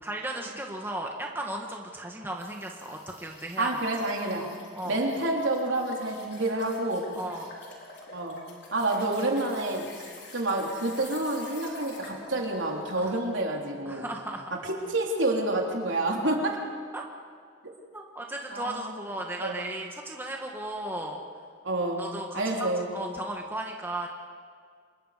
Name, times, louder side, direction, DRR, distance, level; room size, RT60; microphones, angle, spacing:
voice 1, 0.0-3.8 4.4-5.0 7.1-7.5 13.0-13.1 13.8-14.5 16.9-17.0 17.9-21.2 22.0-24.1, right 1 dB, 10° right, 1 dB, 1.5 m, -36 dB
sound 1, 2.4-13.2, left 3 dB, 55° left, 4.4 m, -48 dB
voice 2, 3.6-4.5 4.9-7.2 8.1-8.4 8.7-10.1 10.3-14.1 14.6-16.6 18.5-18.9 19.4-19.6 21.6-22.0 22.3-22.9, right 2 dB, 70° right, 0 dB, 3.4 m, -28 dB
26.5 x 21.5 x 5.1 m, 2.1 s
head